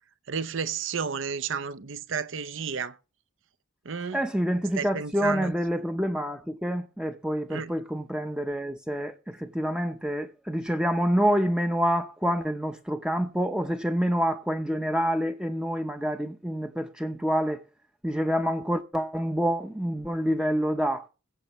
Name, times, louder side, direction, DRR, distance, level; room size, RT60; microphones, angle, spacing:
voice 1, 0.3-3.0 3.8-4.3 4.8-5.5 7.5-7.8, right 6 dB, 60° right, 0.6 m, -32 dB
voice 2, 4.1-17.6 18.0-21.1, equal, 5° right, 0.6 m, -27 dB
21.0 x 7.9 x 3.0 m
head